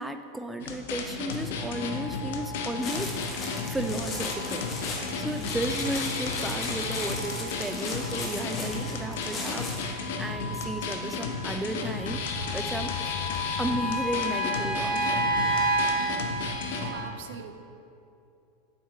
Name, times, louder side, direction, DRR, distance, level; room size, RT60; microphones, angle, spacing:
voice 1, 0.0-13.2 13.6-15.2, right 1 dB, 5° right, 7 dB, 0.3 m, -34 dB
sound 1, 0.6-16.9, left 4 dB, 75° left, 0.6 m, -33 dB
sound 2, 1.6-17.0, right 1 dB, 45° left, 1.4 m, -33 dB
sound 3, 2.8-10.0, left 2 dB, 25° left, 0.9 m, -37 dB
voice 2, 16.8-17.5, right 7 dB, 70° right, 7 dB, 0.5 m, -41 dB
7.4 x 3.5 x 4.5 m, 2.7 s
supercardioid pair, 140°, 0 cm